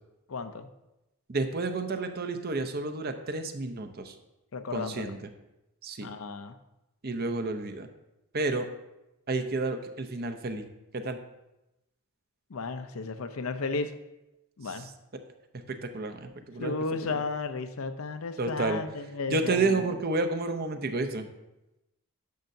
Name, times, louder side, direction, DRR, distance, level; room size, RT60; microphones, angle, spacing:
voice 1, 0.3-0.7 4.5-5.1 6.0-6.6 12.5-13.9 14.6-14.9 16.6-19.9, left 3 dB, 70° left, 9 dB, 0.6 m, -34 dB
voice 2, 1.3-4.1 4.7-5.2 5.8-6.1 7.0-7.9 8.3-8.7 9.3-10.7 10.9-11.2 15.7-16.7 18.4-18.8 19.3-21.3, right 3 dB, 45° right, 7 dB, 0.6 m, -30 dB
10.5 x 6.5 x 2.7 m, 0.94 s
head